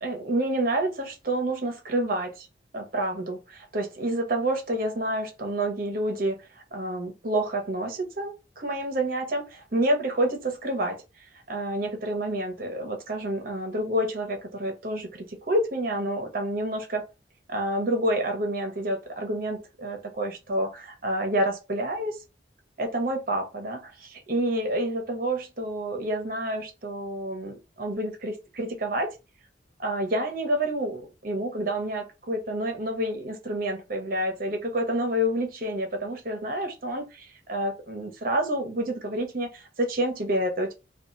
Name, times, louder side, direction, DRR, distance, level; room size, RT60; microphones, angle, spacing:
voice 1, 0.0-2.5 2.7-6.4 6.7-11.0 11.5-17.0 17.5-22.2 22.8-29.1 29.8-40.7, right 1 dB, 55° right, 0.9 m, -28 dB
2.8 x 2.4 x 2.5 m
head